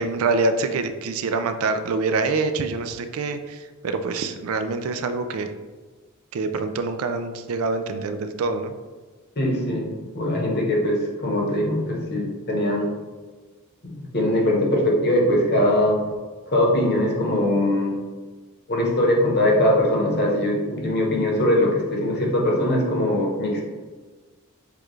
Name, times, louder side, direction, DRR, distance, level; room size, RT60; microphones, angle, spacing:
voice 1, 0.0-5.5 6.3-8.7, right 3 dB, 70° right, 9 dB, 0.4 m, -25 dB
voice 2, 9.4-9.9 10.1-12.9 14.1-16.0 16.5-18.0 18.7-23.7, left 1 dB, 50° left, -1 dB, 1.0 m, -21 dB
6.6 x 2.4 x 3.1 m, 1.4 s
head